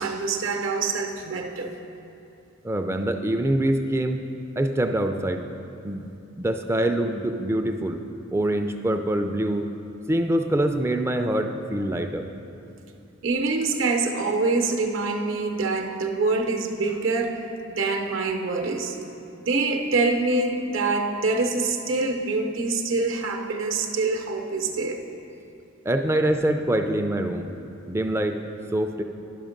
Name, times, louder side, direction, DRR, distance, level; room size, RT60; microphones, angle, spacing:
voice 1, 0.0-1.7 3.0-3.1 13.2-17.4 17.7-19.0 19.4-25.0, right 3 dB, 65° right, 4 dB, 0.7 m, -25 dB
voice 2, 2.6-4.2 4.6-5.5 5.8-6.1 6.4-8.0 8.3-9.7 10.1-12.3 25.9-27.5 27.9-28.4 28.7-29.0, right 1 dB, 15° right, 6 dB, 0.3 m, -24 dB
11.0 x 5.7 x 5.1 m, 2.7 s
head